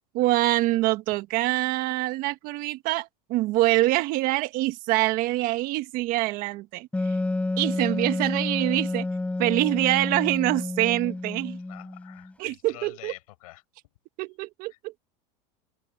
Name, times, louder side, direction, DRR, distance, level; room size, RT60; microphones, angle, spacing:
voice 1, 0.1-7.1 7.6-9.1 9.4-11.6 12.4-13.1 14.2-15.0, right 18 dB, 50° right, 1.4 m, -25 dB
Wind instrument woodwind instrument, 6.9-12.3, left 2 dB, 5° left, 4.1 m, -30 dB
voice 2, 11.7-13.6 14.7-14.8, left 18 dB, 80° left, 7.5 m, -46 dB
supercardioid pair, 135°, 18 cm